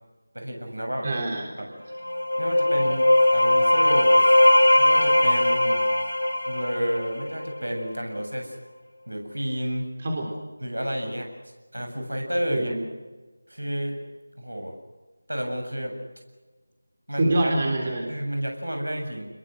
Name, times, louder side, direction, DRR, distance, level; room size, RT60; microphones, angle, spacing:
voice 1, 0.3-1.1 1.6-1.7 2.4-4.2 4.8-5.8 6.5-8.5 9.1-9.9 10.6-11.3 11.7-12.7 13.5-14.0 14.4-14.8 15.3-16.0 17.1-17.4 18.1-19.3, equal, 80° right, 4 dB, 7.5 m, -30 dB
voice 2, 1.0-1.7 10.0-10.3 12.5-12.8 17.2-18.1, right 1 dB, 35° right, 1 dB, 3.6 m, -25 dB
sound 1, 1.9-7.6, left 1 dB, 80° left, 3.3 m, -20 dB
28.0 x 22.0 x 6.5 m, 1.3 s
figure-of-eight pair, 165°, 0 cm